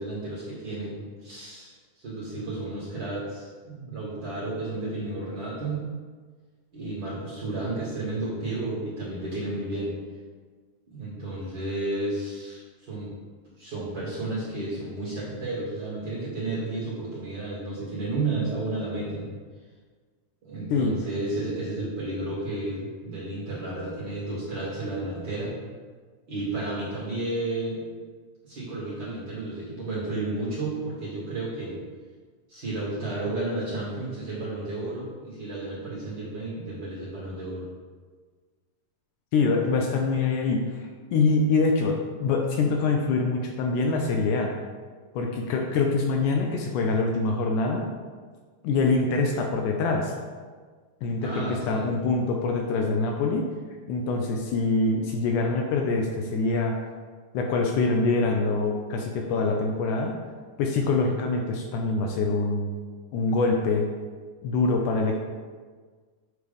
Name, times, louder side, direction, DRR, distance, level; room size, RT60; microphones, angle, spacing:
voice 1, 0.0-5.8 6.7-9.9 10.9-13.1 13.6-19.3 20.4-25.5 26.3-27.8 28.4-31.8 32.5-37.7 51.2-51.9, right 2 dB, 40° right, -7 dB, 2.0 m, -32 dB
voice 2, 39.3-44.5 45.1-47.9 48.6-50.1 51.0-53.5 53.9-56.8 57.3-60.2 60.6-62.7 63.1-63.9 64.4-65.2, left 3 dB, 80° left, 2 dB, 2.0 m, -24 dB
8.2 x 3.3 x 5.2 m, 1.5 s
omnidirectional pair, 3.8 m